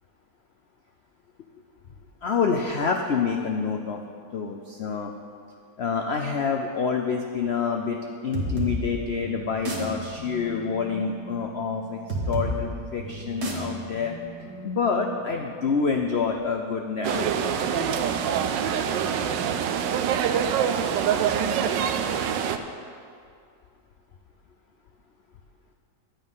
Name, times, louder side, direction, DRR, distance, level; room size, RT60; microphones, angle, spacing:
voice 1, 2.2-4.0 4.3-5.1 5.8-14.1 14.6-17.5, left 5 dB, 70° left, 3 dB, 0.6 m, -27 dB
sound 1, 8.3-15.7, right 1 dB, 65° right, 2.2 m, -33 dB
sound 2, 17.0-22.6, right 8 dB, 85° right, 1.3 m, -25 dB
11.5 x 8.7 x 5.5 m, 2.3 s
omnidirectional pair, 1.9 m